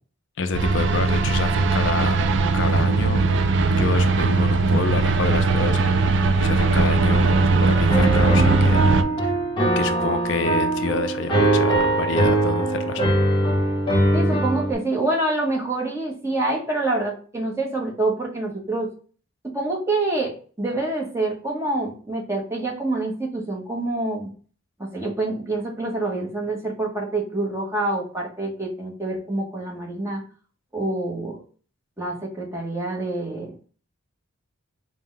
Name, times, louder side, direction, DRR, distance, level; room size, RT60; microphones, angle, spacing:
voice 1, 0.4-2.3 2.5-3.2 3.7-8.8 9.2-9.3 9.8-13.1, left 4 dB, 55° left, 8 dB, 0.4 m, -28 dB
sound 1, 0.5-9.0, right 3 dB, 55° right, 0.4 m, -19 dB
Piano, 7.9-14.7, right 1 dB, 25° left, 0.9 m, -21 dB
voice 2, 14.1-18.9 19.4-24.3 24.9-30.2 30.7-31.4 32.0-33.5, right 2 dB, 10° right, -2 dB, 0.9 m, -26 dB
4.3 x 2.1 x 3.8 m, 0.40 s
head